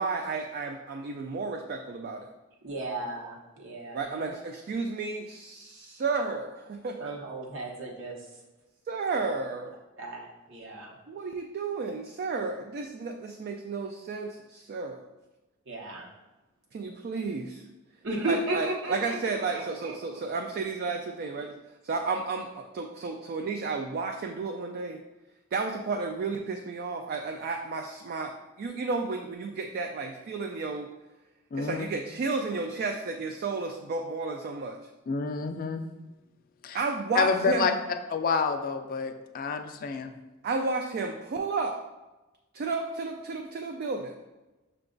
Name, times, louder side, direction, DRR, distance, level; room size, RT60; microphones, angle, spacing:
voice 1, 0.0-2.3 3.9-7.1 8.9-9.7 11.1-15.0 16.7-17.6 18.2-21.5 21.8-25.0 25.5-30.9 31.6-34.8 36.7-37.7 40.4-41.8 42.5-44.2, right 4 dB, 45° right, 4 dB, 0.3 m, -32 dB
voice 2, 2.6-4.3 7.0-8.3 10.0-11.0 15.7-16.1 18.0-19.2 19.5-20.2, right 2 dB, 65° right, -1 dB, 0.9 m, -35 dB
voice 3, 31.5-31.9 35.1-35.8 36.6-36.8 37.1-37.7 38.1-40.1, left 5 dB, 45° left, 6 dB, 0.3 m, -28 dB
5.9 x 2.3 x 3.8 m, 1.1 s
head